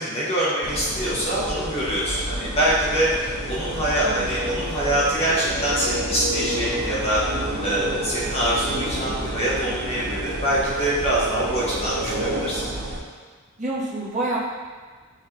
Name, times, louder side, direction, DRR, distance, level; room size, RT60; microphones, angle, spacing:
voice 1, 0.0-7.2 7.6-12.6, right 1 dB, 30° left, -7 dB, 0.8 m, -24 dB
sound 1, 0.6-13.0, right 1 dB, 85° right, 0.7 m, -30 dB
voice 2, 13.6-14.4, right 2 dB, 35° right, -6 dB, 0.9 m, -28 dB
5.7 x 3.2 x 2.8 m, 1.5 s
head